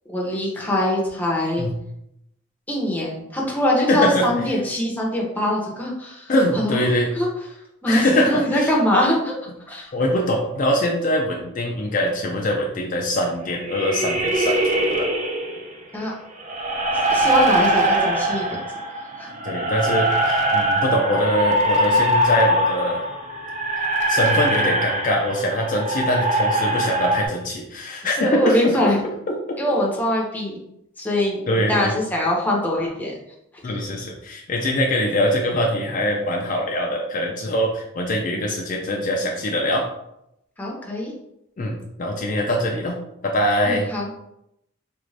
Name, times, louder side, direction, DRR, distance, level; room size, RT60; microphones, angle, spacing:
voice 1, 0.1-1.7 2.7-6.9 7.1-7.3 7.8-9.3 9.7-9.9 15.9-16.1 17.1-18.6 19.2-19.3 28.2-29.0 29.6-30.6 31.0-31.4 31.7-33.1 40.6-41.1 43.6-44.2, left 1 dB, 10° left, -3 dB, 0.7 m, -23 dB
voice 2, 3.9-4.3 6.3-7.1 7.9-8.7 9.9-15.1 19.4-23.0 23.8-28.9 29.3-29.6 31.5-31.9 33.6-39.9 41.6-43.9, left 1 dB, 40° left, -1 dB, 0.4 m, -23 dB
sound 1, 13.6-15.7 16.4-27.3, right 1 dB, 35° right, 0.5 m, -22 dB
3.5 x 2.5 x 3.2 m, 0.81 s
head